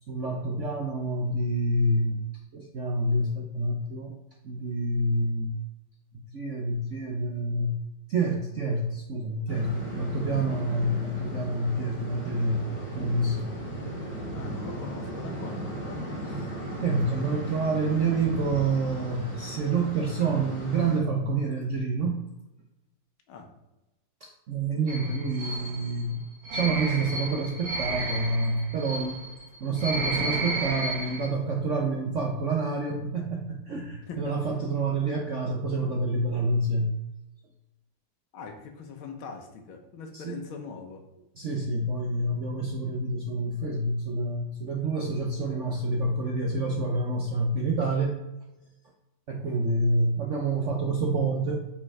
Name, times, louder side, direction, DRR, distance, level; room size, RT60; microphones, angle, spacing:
voice 1, 0.1-2.2 2.5-4.1 4.4-5.5 6.3-7.7 8.1-12.7 12.9-13.6 16.2-16.4 16.8-22.2 24.2-26.2 26.5-29.2 29.6-37.0 40.1-40.4 41.3-48.2 49.3-51.6, right 2 dB, 80° right, 0 dB, 0.6 m, -28 dB
sound 1, 9.5-21.0, right 1 dB, 30° left, 2.1 m, -36 dB
voice 2, 14.3-16.0 23.3-23.5 34.1-34.2 38.3-41.0, left 5 dB, 75° left, 3 dB, 1.8 m, -41 dB
sound 2, 24.9-31.3, right 2 dB, 45° right, 0.9 m, -33 dB
5.5 x 5.0 x 4.8 m, 0.99 s
omnidirectional pair, 2.3 m